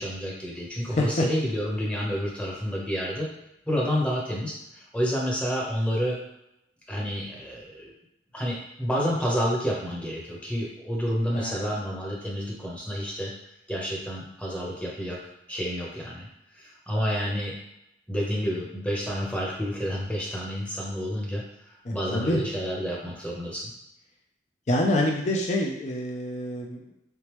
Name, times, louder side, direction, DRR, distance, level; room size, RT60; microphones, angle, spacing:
voice 1, 0.0-3.3 3.7-6.2 6.9-7.9 8.3-13.3 13.7-15.2 15.5-16.3 16.5-17.5 18.1-21.4 21.9-23.7, equal, 5° left, -4 dB, 0.9 m, -29 dB
voice 2, 0.9-1.2 11.3-11.5 21.9-22.4 24.7-26.9, left 1 dB, 40° left, 0 dB, 0.5 m, -26 dB
3.9 x 3.5 x 3.0 m, 0.83 s
head